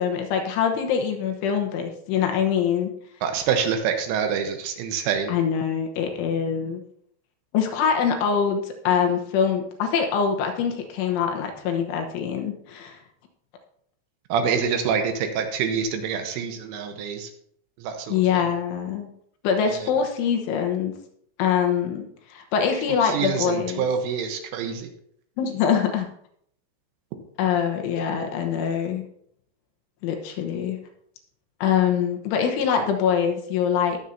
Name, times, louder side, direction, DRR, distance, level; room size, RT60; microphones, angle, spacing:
voice 1, 0.0-2.9 5.3-6.8 7.5-13.0 18.1-19.1 19.4-20.9 21.4-23.9 25.4-26.1 27.4-29.0 30.0-30.8 31.6-34.0, left 7 dB, 80° left, 3 dB, 3.4 m, -24 dB
voice 2, 3.2-5.3 14.3-17.3 17.8-18.5 19.8-19.9 23.0-24.9, right 7 dB, 80° right, 5 dB, 3.5 m, -26 dB
20.0 x 7.1 x 2.8 m, 0.69 s
omnidirectional pair, 5.8 m